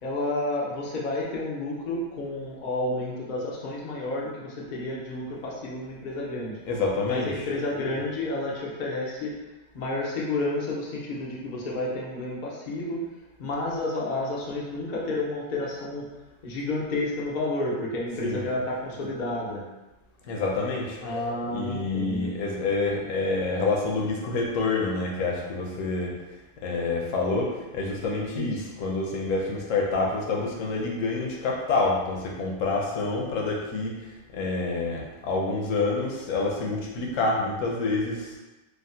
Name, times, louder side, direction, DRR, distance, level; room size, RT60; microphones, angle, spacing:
voice 1, 0.0-6.6 7.0-9.3 9.7-13.0 13.4-16.0 16.4-19.6 21.0-22.3 28.3-28.6, left 2 dB, 85° left, -4 dB, 0.4 m, -30 dB
voice 2, 6.7-7.3 18.2-18.4 20.3-21.0 21.5-26.1 26.6-33.9 34.3-38.3, left 3 dB, 65° left, -1 dB, 0.9 m, -27 dB
3.4 x 2.0 x 2.6 m, 1.1 s
omnidirectional pair, 1.6 m